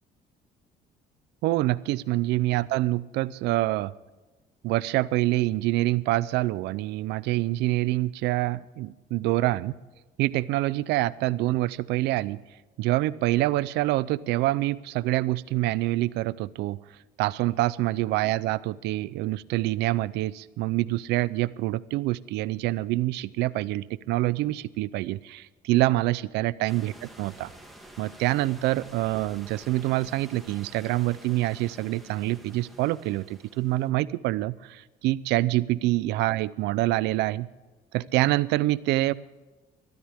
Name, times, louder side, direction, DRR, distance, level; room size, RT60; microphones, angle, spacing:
voice 1, 1.4-3.9 4.6-9.7 10.2-12.4 12.8-16.8 17.2-27.5 28.0-37.5 37.9-39.1, right 17 dB, 90° right, 19 dB, 0.6 m, -26 dB
sound 1, 26.7-33.9, right 1 dB, ahead, 2.7 m, -49 dB
21.0 x 13.5 x 3.6 m, 1.2 s
cardioid pair, 110°, 17 cm